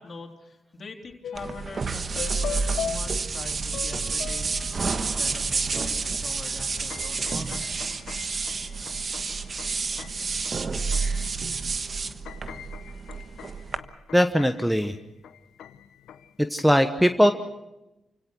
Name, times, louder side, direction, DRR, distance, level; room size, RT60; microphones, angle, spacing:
voice 1, 0.0-4.6 4.9-8.0, left 3 dB, 55° left, 2 dB, 3.5 m, -43 dB
sound 1, 1.2-1.8 2.1-5.1 5.8-5.9 6.2-11.6 12.0-16.4, left 9 dB, 85° left, 0.8 m, -41 dB
sound 2, 1.3-13.8, right 4 dB, 50° right, 1.3 m, -29 dB
voice 2, 14.1-15.0 16.5-17.3, equal, ahead, 8 dB, 1.2 m, -20 dB
29.0 x 17.0 x 6.3 m, 0.98 s
supercardioid pair, 55°, 0 cm